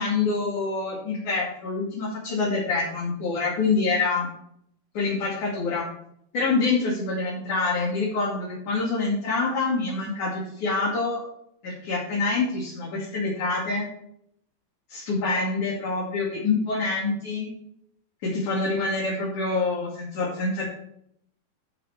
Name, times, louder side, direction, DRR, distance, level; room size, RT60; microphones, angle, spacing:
voice 1, 0.0-4.3 4.9-5.9 6.3-11.2 11.6-13.9 14.9-17.5 18.2-20.6, left 3 dB, 50° left, -6 dB, 3.9 m, -26 dB
12.5 x 6.4 x 4.6 m, 0.70 s
omnidirectional pair, 4.5 m